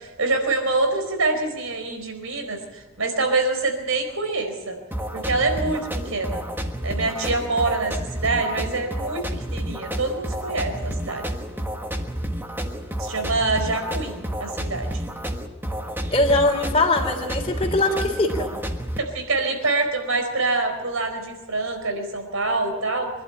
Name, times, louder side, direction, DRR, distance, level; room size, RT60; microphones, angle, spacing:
voice 1, 0.0-4.8 5.1-6.4 6.8-11.2 13.0-15.0 19.0-23.1, right 3 dB, 75° right, 5 dB, 4.5 m, -25 dB
sound 1, 4.9-19.0, equal, 10° right, 1.5 m, -30 dB
voice 2, 16.1-18.5, left 2 dB, 25° left, 2 dB, 3.5 m, -21 dB
25.5 x 11.5 x 9.9 m, 1.1 s
head